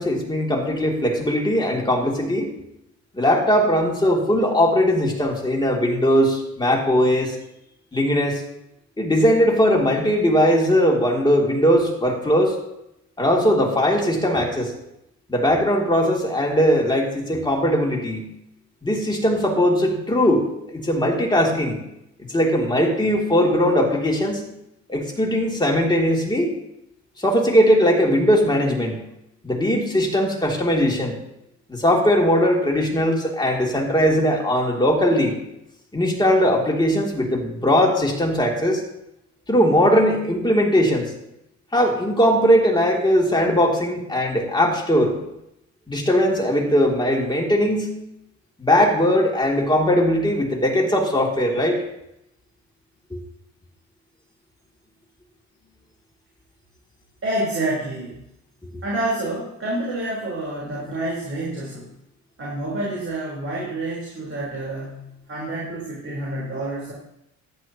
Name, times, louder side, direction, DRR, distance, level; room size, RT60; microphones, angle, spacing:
voice 1, 0.0-2.5 3.1-7.3 7.9-8.4 9.0-12.6 13.2-14.7 15.3-18.3 18.8-21.8 22.3-24.4 24.9-26.5 27.2-29.0 29.4-31.2 31.7-35.3 35.9-38.8 39.5-41.1 41.7-45.1 45.9-47.9 48.6-51.8, equal, 15° left, -1 dB, 3.1 m, -19 dB
voice 2, 57.2-58.2 58.8-61.9 62.4-66.9, right 1 dB, 45° right, -5 dB, 4.5 m, -28 dB
14.0 x 11.0 x 3.1 m, 0.84 s
cardioid pair, 90°, 30 cm